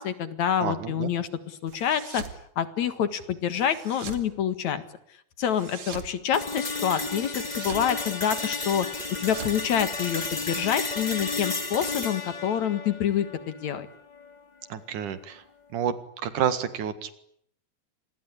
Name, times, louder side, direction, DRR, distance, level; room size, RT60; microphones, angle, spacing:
voice 1, 0.0-2.2 2.6-4.8 5.4-8.9 9.2-13.9, left 9 dB, 65° left, 12 dB, 2.9 m, -27 dB
voice 2, 0.6-1.1 14.7-15.4 15.7-15.9 16.2-17.1, right 8 dB, 75° right, 12 dB, 3.3 m, -29 dB
sound 1, 1.7-2.4 3.6-4.3 5.4-6.1 7.2-7.9 8.9-10.4, right 6 dB, 60° right, 3.5 m, -42 dB
sound 2, 6.3-14.3, left 3 dB, 15° left, 1.6 m, -33 dB
26.5 x 20.5 x 9.9 m, 0.68 s
omnidirectional pair, 3.7 m